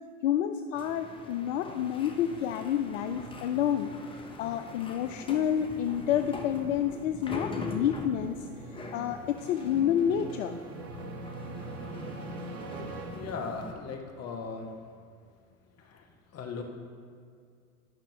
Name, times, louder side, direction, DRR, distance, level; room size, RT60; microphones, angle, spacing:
voice 1, 0.2-3.9 4.4-8.5 8.9-10.6 12.9-13.0, left 9 dB, 65° left, 8 dB, 0.5 m, -29 dB
sound 1, 0.7-13.7, left 3 dB, 10° left, 0.7 m, -43 dB
sound 2, 1.3-13.9, right 3 dB, 40° right, 0.8 m, -46 dB
voice 2, 13.1-14.7 15.8-16.0 16.3-16.6, left 4 dB, 35° left, 3 dB, 1.2 m, -38 dB
10.5 x 5.8 x 3.4 m, 2.2 s
hypercardioid pair, 85°, 42 cm